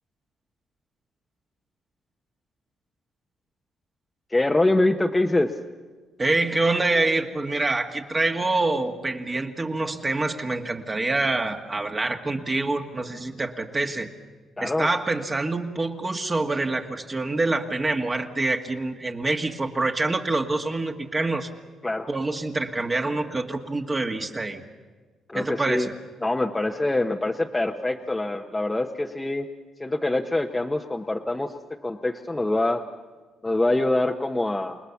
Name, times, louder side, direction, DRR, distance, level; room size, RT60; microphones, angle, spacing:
voice 1, 4.3-5.5 14.6-14.9 21.8-22.1 25.3-25.9 26.2-29.5 29.8-31.5 31.8-32.8 33.4-34.8, left 2 dB, 15° left, 2 dB, 1.0 m, -24 dB
voice 2, 6.2-14.1 14.6-21.5 22.1-24.6 25.3-25.9, right 2 dB, 25° right, 3 dB, 1.7 m, -26 dB
28.5 x 19.5 x 7.2 m, 1.4 s
cardioid pair, 90°, 0 cm